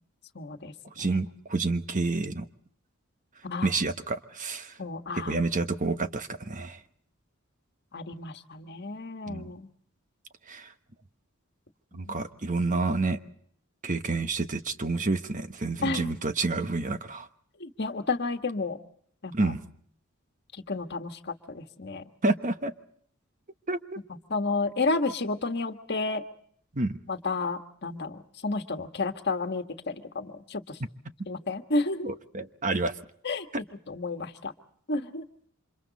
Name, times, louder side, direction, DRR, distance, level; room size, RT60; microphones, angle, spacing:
voice 1, 0.3-1.2 3.4-3.7 4.8-5.3 7.9-9.7 11.9-12.2 15.8-16.1 17.6-18.8 19.2-19.5 20.7-22.0 24.3-26.2 27.1-30.8 31.3-32.1 33.2-33.5 33.9-34.5 34.9-35.3, left 3 dB, 55° left, 1.6 m, -31 dB
voice 2, 1.0-2.5 3.6-4.7 5.3-6.8 9.3-9.5 10.5-10.7 11.9-13.2 13.8-17.3 19.3-19.6 22.2-22.7 23.7-24.0 26.7-27.0 32.0-32.9, right 3 dB, 40° right, 1.1 m, -29 dB
29.5 x 26.5 x 4.1 m
head